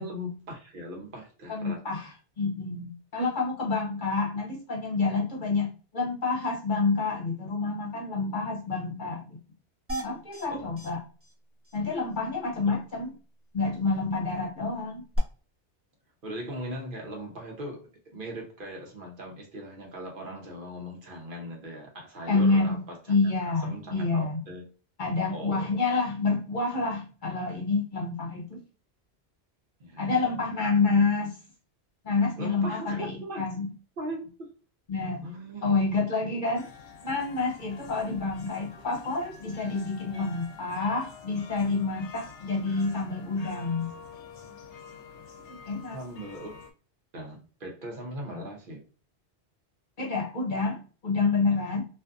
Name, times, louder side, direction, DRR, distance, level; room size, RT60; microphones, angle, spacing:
voice 1, 0.0-1.8 10.5-10.9 12.7-12.8 16.2-23.2 23.5-24.7 25.3-25.8 29.8-30.2 32.4-33.5 34.0-34.5 35.2-35.9 45.9-46.6 47.1-48.8, equal, 55° right, 0.8 m, -39 dB
voice 2, 1.5-2.1 2.4-9.2 10.0-11.0 11.7-13.1 13.5-15.0 22.3-22.8 23.1-24.4 25.0-28.6 30.0-31.3 32.0-33.7 34.9-35.2 35.6-36.7 37.0-43.9 45.5-46.0 50.0-50.8 51.0-51.8, left 3 dB, 50° left, 0.7 m, -28 dB
sound 1, 9.9-10.5 10.8-10.9 11.2-11.3 11.6-11.8 15.1-15.2, right 1 dB, 15° right, 0.7 m, -35 dB
sound 2, 36.6-46.7, left 5 dB, 90° left, 0.9 m, -48 dB
2.5 x 2.4 x 2.3 m
omnidirectional pair, 1.1 m